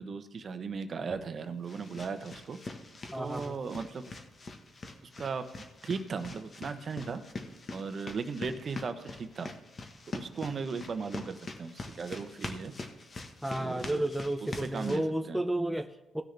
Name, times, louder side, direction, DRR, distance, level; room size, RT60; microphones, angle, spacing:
voice 1, 0.0-2.6 3.1-4.1 5.2-7.2 7.7-9.5 10.1-12.7 13.6-14.1 14.6-15.4, right 5 dB, 45° right, 9 dB, 0.9 m, -37 dB
sound 1, 1.0-15.0, left 3 dB, 40° left, 1.3 m, -44 dB
voice 2, 3.1-3.6 13.4-16.2, right 1 dB, 5° right, 6 dB, 0.6 m, -32 dB
17.0 x 6.4 x 3.4 m, 1.1 s
cardioid pair, 90°, 0 cm